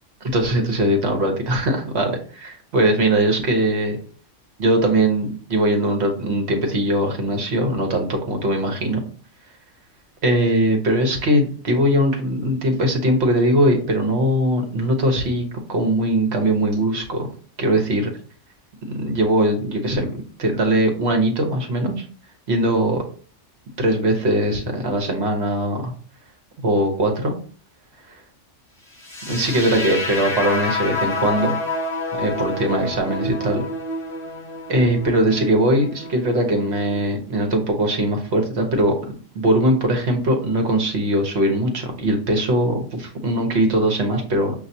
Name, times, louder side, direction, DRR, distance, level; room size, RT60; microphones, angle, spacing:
voice 1, 0.3-4.0 4.6-9.0 10.2-17.3 17.6-18.1 18.9-20.1 20.4-22.0 22.5-23.0 23.8-25.9 26.6-27.3 28.1-28.2 29.3-31.6 32.2-33.6 34.7-39.0 39.3-44.5, right 1 dB, 60° right, 3 dB, 1.1 m, -20 dB
sound 1, 29.0-37.0, left 2 dB, 5° left, 2.0 m, -28 dB
5.4 x 2.6 x 2.7 m, 0.42 s
omnidirectional pair, 1.3 m